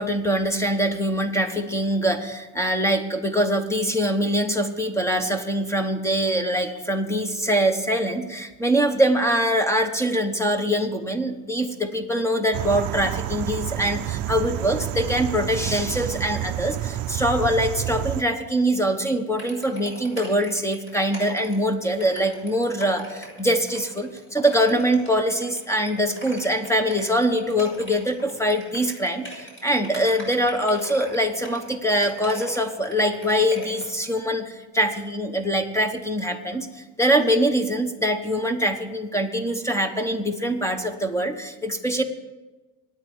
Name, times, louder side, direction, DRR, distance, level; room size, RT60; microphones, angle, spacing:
voice 1, 0.0-42.0, equal, 5° left, 8 dB, 1.1 m, -23 dB
sound 1, 12.5-18.2, right 13 dB, 50° right, 0.6 m, -29 dB
sound 2, 19.4-34.0, equal, 25° left, 5.8 m, -40 dB
24.0 x 9.4 x 4.6 m, 1.2 s
cardioid pair, 135°, 44 cm